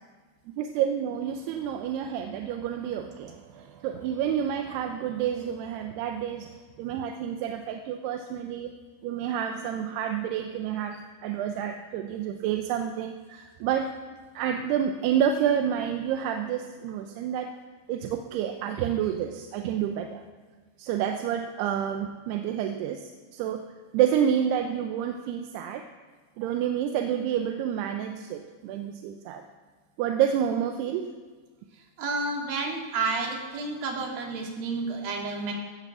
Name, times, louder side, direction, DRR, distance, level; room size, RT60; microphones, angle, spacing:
voice 1, 0.5-8.7 9.0-13.9 14.3-17.5 17.9-20.2 20.8-23.6 23.9-25.9 26.4-29.4 30.0-31.1, right 9 dB, 80° right, 5 dB, 2.7 m, -29 dB
voice 2, 32.0-35.5, right 3 dB, 60° right, 0 dB, 4.0 m, -30 dB
16.0 x 12.0 x 7.1 m, 1.4 s
omnidirectional pair, 4.9 m